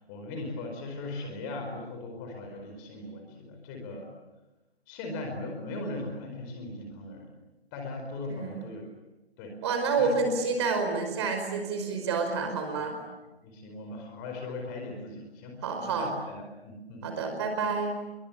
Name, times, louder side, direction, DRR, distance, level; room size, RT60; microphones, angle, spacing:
voice 1, 0.1-4.1 4.9-7.3 7.7-8.9 9.4-9.5 10.0-10.3 12.7-13.0 13.4-17.1, left 2 dB, 20° left, 3 dB, 4.7 m, -39 dB
voice 2, 8.3-8.6 9.6-13.0 15.6-16.1 17.0-17.9, right 4 dB, 25° right, 5 dB, 5.1 m, -29 dB
29.0 x 23.5 x 8.8 m, 1.0 s
figure-of-eight pair, 145°, 31 cm